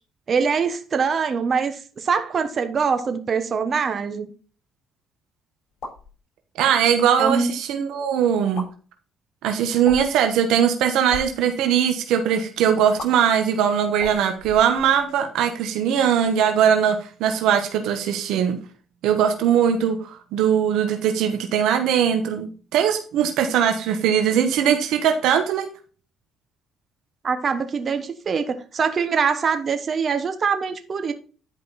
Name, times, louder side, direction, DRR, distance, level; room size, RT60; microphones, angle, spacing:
voice 1, 0.3-4.3 7.2-7.5 27.2-31.1, right 5 dB, 45° right, 1.1 m, -23 dB
sound 1, 5.7-6.1 7.1-7.4 8.4-8.7 9.8-10.2 11.0-11.3 13.0-13.1 13.9-15.1, left 3 dB, 60° left, 4.6 m, -36 dB
voice 2, 6.6-8.7 9.4-18.6 19.0-25.7, right 8 dB, 80° right, 1.2 m, -20 dB
10.5 x 5.2 x 4.1 m
cardioid pair, 95°, 0 cm